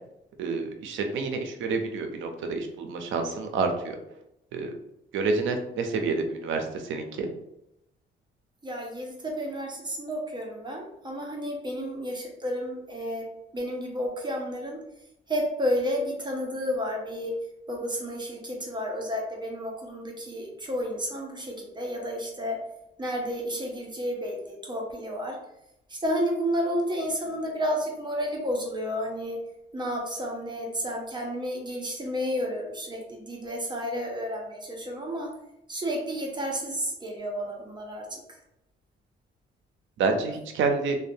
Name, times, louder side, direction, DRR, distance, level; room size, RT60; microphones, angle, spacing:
voice 1, 0.4-4.0 4.5-4.7 5.1-7.3 40.0-41.0, right 4 dB, 75° right, 5 dB, 0.5 m, -28 dB
voice 2, 8.6-13.3 13.5-14.8 15.3-17.4 17.7-22.6 23.0-25.4 25.9-29.4 29.7-35.3 35.7-38.4, equal, 20° right, 0 dB, 0.7 m, -31 dB
2.6 x 2.2 x 2.6 m, 0.82 s
cardioid pair, 90°, 20 cm